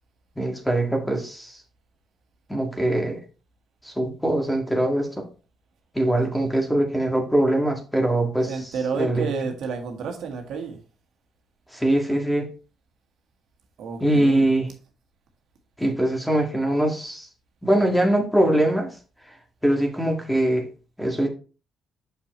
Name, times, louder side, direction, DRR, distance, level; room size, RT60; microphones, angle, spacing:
voice 1, 0.4-1.5 2.5-3.2 4.0-5.2 6.0-8.5 9.0-9.3 11.7-12.5 14.0-14.7 15.8-17.3 17.6-18.9 19.6-20.7 21.0-21.3, right 1 dB, 5° left, 1.8 m, -22 dB
voice 2, 8.4-10.8 13.8-14.5, right 5 dB, 75° right, 1.6 m, -30 dB
6.7 x 5.7 x 3.1 m
cardioid pair, 90°, 0 cm